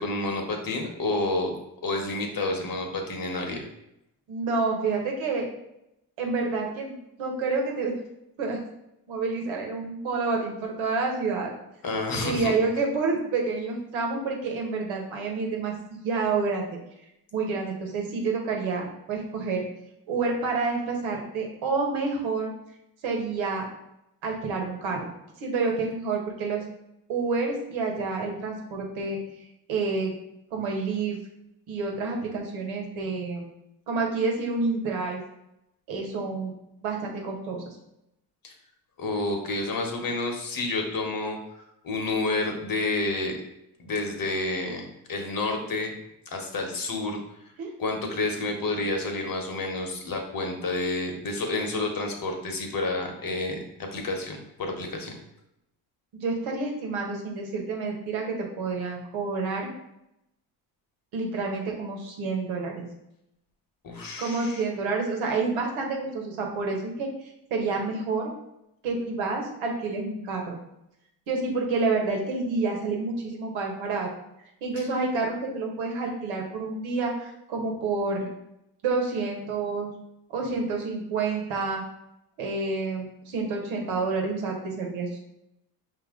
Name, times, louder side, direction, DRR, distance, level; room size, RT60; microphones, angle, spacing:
voice 1, 0.0-1.5 1.8-3.6 11.8-12.5 38.4-38.5 39.0-41.4 41.8-43.4 43.8-45.9 46.3-47.2 47.8-53.6 53.9-55.2 63.8-64.6 74.8-74.9, left 2 dB, 45° left, 2 dB, 1.2 m, -29 dB
voice 2, 4.3-5.5 6.2-8.0 8.4-8.6 9.1-11.5 12.2-16.7 17.3-19.6 20.1-22.5 23.0-23.6 24.2-25.1 25.4-26.6 27.1-29.2 29.7-30.1 30.5-31.2 31.7-33.5 33.9-35.2 35.9-36.5 36.8-37.8 47.6-47.7 56.1-59.7 61.1-62.8 64.2-67.1 67.5-68.3 68.8-70.6 71.3-74.1 74.6-78.3 78.8-79.9 80.3-81.8 82.4-85.2, right 4 dB, 75° right, 0 dB, 1.3 m, -28 dB
5.2 x 2.8 x 3.7 m, 0.84 s
supercardioid pair, 65°, 47 cm